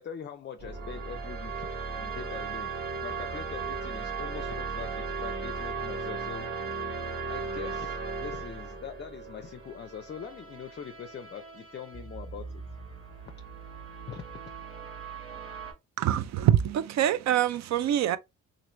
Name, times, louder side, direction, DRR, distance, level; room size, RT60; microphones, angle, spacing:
voice 1, 0.0-6.5 7.3-12.6 14.1-14.4, left 8 dB, 35° left, 0.4 m, -43 dB
sound 1, 0.6-15.7, right 4 dB, 45° right, 1.5 m, -37 dB
voice 2, 16.0-18.2, right 11 dB, 65° right, 0.5 m, -25 dB
3.0 x 2.6 x 3.0 m
cardioid pair, 90°, 30 cm